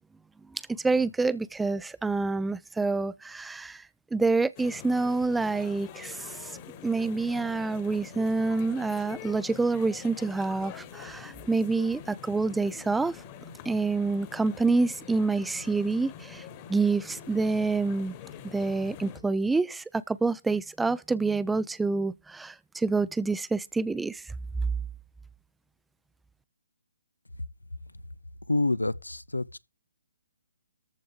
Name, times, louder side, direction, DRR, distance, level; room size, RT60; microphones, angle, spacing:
voice 1, 0.5-3.8 4.1-6.5 6.8-13.2 13.6-16.4 16.7-18.1 18.4-24.2, right 3 dB, 5° right, 0.6 m, -27 dB
sound 1, 4.6-19.2, left 8 dB, 30° left, 1.6 m, -45 dB
voice 2, 28.5-29.6, left 2 dB, 85° left, 0.7 m, -27 dB
14.0 x 4.9 x 7.3 m
figure-of-eight pair, 135°, 0 cm